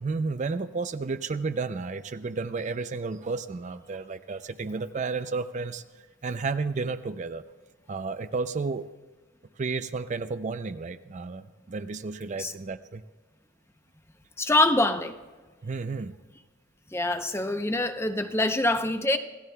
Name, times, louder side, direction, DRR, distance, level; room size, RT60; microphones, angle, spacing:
voice 1, 0.0-5.8 6.2-7.4 7.9-8.9 9.6-13.0 15.6-16.2, right 4 dB, 40° right, 0.4 m, -32 dB
voice 2, 14.4-15.1 16.9-19.2, left 2 dB, 15° left, 0.6 m, -24 dB
27.5 x 15.5 x 2.3 m
head